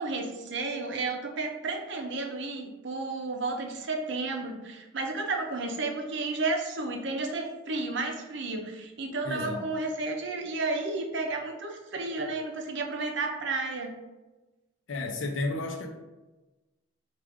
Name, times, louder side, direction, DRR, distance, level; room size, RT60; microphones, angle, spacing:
voice 1, 0.0-14.0, right 3 dB, 60° right, 3 dB, 0.6 m, -32 dB
voice 2, 9.2-9.7 14.9-15.9, left 2 dB, 75° left, 4 dB, 0.6 m, -32 dB
4.7 x 2.4 x 3.5 m, 1.1 s
head